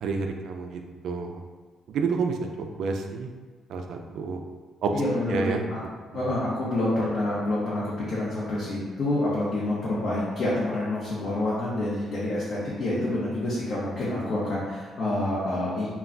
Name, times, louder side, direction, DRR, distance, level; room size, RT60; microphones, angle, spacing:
voice 1, 0.0-1.4 1.9-3.3 3.7-4.4 4.8-4.9 5.3-5.6 6.1-6.4, right 4 dB, 75° right, 4 dB, 0.3 m, -29 dB
voice 2, 4.9-5.8 6.1-15.9, left 1 dB, 65° left, -8 dB, 0.7 m, -27 dB
2.3 x 2.2 x 3.7 m, 1.4 s
cardioid pair, 90°, 0 cm